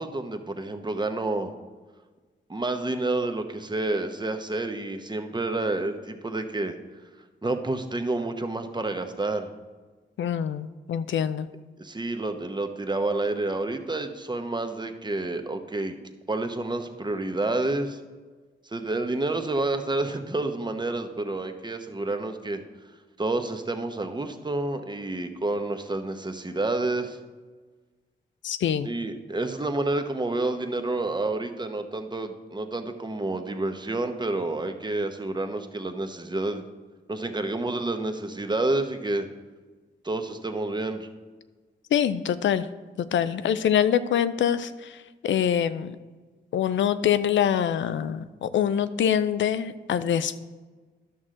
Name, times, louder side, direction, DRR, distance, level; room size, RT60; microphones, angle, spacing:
voice 1, 0.0-1.5 2.5-6.8 7.4-9.5 11.8-16.0 16.3-18.0 18.7-22.6 23.2-27.2 28.8-36.6 37.1-39.3 40.0-41.1, right 2 dB, 25° right, 7 dB, 0.9 m, -29 dB
voice 2, 10.2-11.5 28.4-28.9 41.9-42.7 43.0-46.0 46.5-50.4, left 9 dB, 75° left, 14 dB, 0.4 m, -25 dB
11.0 x 6.2 x 3.7 m, 1.3 s
cardioid pair, 55°, 20 cm